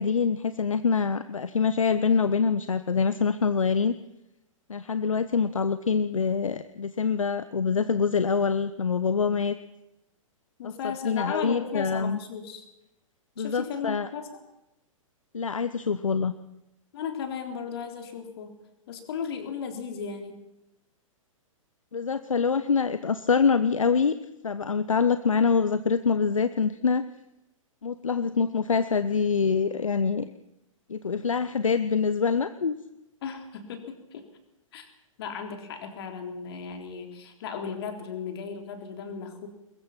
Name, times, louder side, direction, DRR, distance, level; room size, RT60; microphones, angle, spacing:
voice 1, 0.0-3.9 4.7-9.6 10.6-10.7 11.0-12.2 13.4-14.1 15.3-16.3 21.9-24.1 24.4-27.0 27.8-30.3 30.9-32.7, left 5 dB, 70° left, 12 dB, 1.0 m, -25 dB
voice 2, 10.6-12.6 13.4-14.3 16.9-18.6 18.9-20.4 33.2-34.2 34.7-34.9 35.2-39.5, left 6 dB, 45° left, 5 dB, 3.8 m, -36 dB
22.5 x 21.0 x 5.9 m, 0.92 s
figure-of-eight pair, 110°, 17 cm